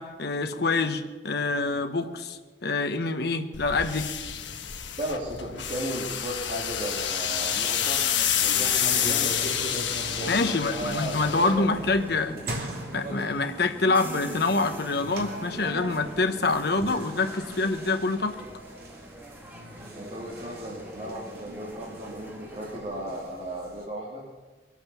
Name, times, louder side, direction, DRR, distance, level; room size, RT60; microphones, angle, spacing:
voice 1, 0.0-4.1 10.3-12.4 12.9-18.4, left 3 dB, 60° left, 8 dB, 1.1 m, -26 dB
sound 1, 3.5-12.2, left 9 dB, 75° left, 1.3 m, -29 dB
voice 2, 5.0-8.0 8.4-9.3 10.0-11.7 19.9-24.2, right 1 dB, 35° right, -5 dB, 2.9 m, -35 dB
sound 2, 7.2-22.8, right 1 dB, 10° right, 1.8 m, -46 dB
sound 3, 8.0-23.8, right 1 dB, 55° right, 3.0 m, -40 dB
22.5 x 8.8 x 7.1 m, 1.3 s
head